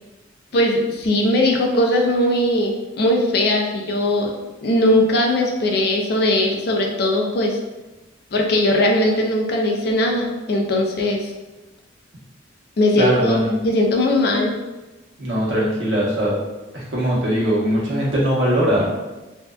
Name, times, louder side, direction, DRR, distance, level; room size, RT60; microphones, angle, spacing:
voice 1, 0.5-4.3 4.6-7.6 8.3-11.3 12.8-13.4 13.6-14.5, left 1 dB, 55° left, 1 dB, 0.4 m, -19 dB
voice 2, 13.0-13.6 15.2-16.4 16.7-18.9, equal, 75° right, -6 dB, 0.9 m, -20 dB
2.5 x 2.2 x 2.2 m, 1.1 s
head